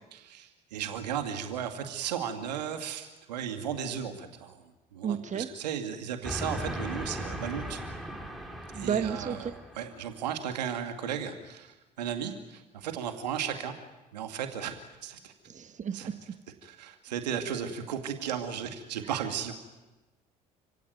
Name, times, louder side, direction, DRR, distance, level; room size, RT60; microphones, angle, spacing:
voice 1, 0.1-4.6 4.9-7.8 8.7-13.7 14.1-15.3 15.9-16.1 16.6-19.5, right 8 dB, 80° right, 7 dB, 2.3 m, -35 dB
voice 2, 5.0-5.5 8.7-9.4 15.5-16.1, right 8 dB, 35° right, 10 dB, 1.6 m, -32 dB
Train, 6.2-10.2, equal, ahead, 5.2 m, -38 dB
29.5 x 17.0 x 9.4 m, 1.1 s
hypercardioid pair, 60°, 21 cm